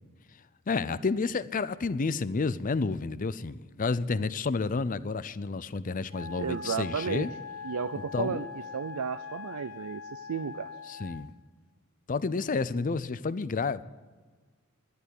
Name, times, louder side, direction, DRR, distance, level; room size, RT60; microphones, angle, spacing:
voice 1, 0.7-7.3 8.1-8.5 10.9-11.3 12.1-13.8, left 4 dB, 35° left, 0.5 m, -30 dB
Wind instrument woodwind instrument, 6.1-11.3, left 4 dB, 75° left, 0.8 m, -42 dB
voice 2, 6.4-7.3 7.6-10.7, right 6 dB, 85° right, 0.5 m, -33 dB
11.5 x 11.0 x 8.1 m
head